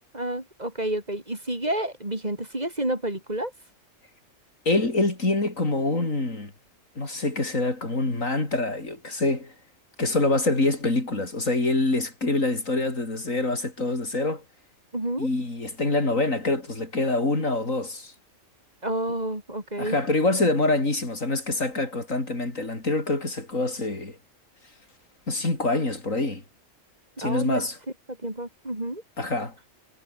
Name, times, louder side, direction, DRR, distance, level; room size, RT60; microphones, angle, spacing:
voice 1, 0.1-3.5 14.9-15.3 18.8-20.0 27.2-27.7 28.2-29.0, right 1 dB, 30° right, 4.9 m, -29 dB
voice 2, 4.7-6.5 7.0-9.5 10.0-14.4 15.2-18.1 19.8-24.2 25.3-26.4 27.2-27.8 29.2-29.5, left 2 dB, 85° left, 5.4 m, -25 dB
omnidirectional pair, 1.3 m